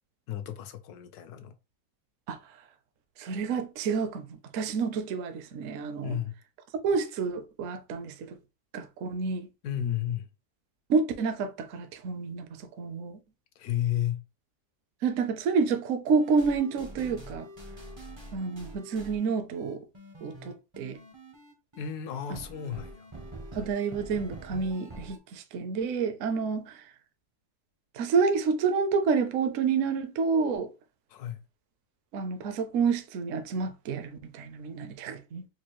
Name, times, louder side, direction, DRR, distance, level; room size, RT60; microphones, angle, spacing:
voice 1, 0.3-1.6 6.0-6.3 9.6-10.3 13.6-14.2 21.8-23.1 31.1-31.4, left 10 dB, 75° left, 1.1 m, -32 dB
voice 2, 3.2-6.2 6.8-8.4 8.7-9.5 10.9-13.2 15.0-17.5 18.3-19.8 20.2-21.0 23.5-26.8 27.9-30.7 32.1-35.5, right 5 dB, 65° right, 0.8 m, -29 dB
sound 1, 16.2-25.2, right 1 dB, 35° right, 0.4 m, -45 dB
4.3 x 2.3 x 3.0 m
omnidirectional pair, 1.7 m